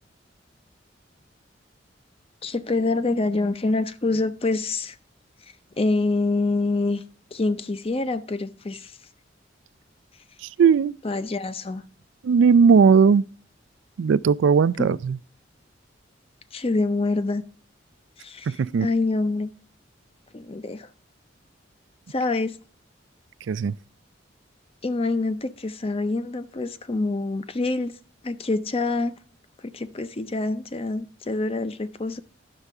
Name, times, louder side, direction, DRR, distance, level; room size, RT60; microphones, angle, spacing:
voice 1, 2.4-5.0 5.8-7.0 7.3-9.0 11.0-11.8 14.8-15.0 16.5-17.4 18.2-18.5 18.8-19.5 20.3-20.9 22.1-22.6 24.8-28.0 28.2-29.1 29.6-32.2, left 3 dB, 30° left, 0.6 m, -26 dB
voice 2, 10.4-10.9 12.2-13.2 14.0-15.2 18.5-18.9 23.5-23.7, right 6 dB, 75° right, 0.3 m, -18 dB
11.0 x 6.6 x 3.5 m
head